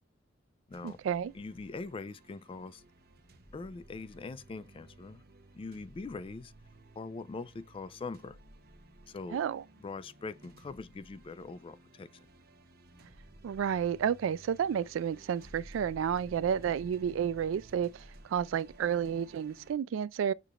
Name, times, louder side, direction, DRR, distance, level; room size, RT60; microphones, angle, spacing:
sound 1, 0.7-19.7, right 1 dB, 50° right, 0.8 m, -55 dB
voice 1, 0.8-1.3 9.3-9.6 13.4-18.0 18.3-20.3, right 8 dB, 70° right, 0.3 m, -31 dB
voice 2, 1.3-2.8 3.5-5.2 5.5-6.5 7.0-8.4 9.1-9.4 9.8-12.3, left 3 dB, 25° left, 0.3 m, -42 dB
6.6 x 2.4 x 2.9 m
head